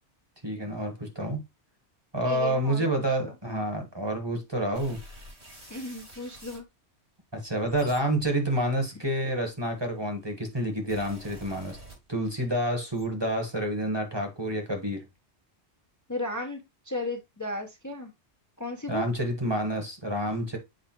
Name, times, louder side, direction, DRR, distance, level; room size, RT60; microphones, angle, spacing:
voice 1, 0.4-1.4 2.1-5.0 7.3-11.8 12.1-15.0 18.9-20.6, right 1 dB, 25° right, 1.4 m, -28 dB
voice 2, 2.2-2.9 5.7-6.6 16.1-18.1 18.6-19.0, left 2 dB, 15° left, 0.9 m, -35 dB
sound 1, 4.7-6.7 7.4-9.7 10.5-12.5 12.7-13.1, right 1 dB, 85° right, 5.6 m, -48 dB
7.7 x 4.8 x 3.0 m
omnidirectional pair, 1.1 m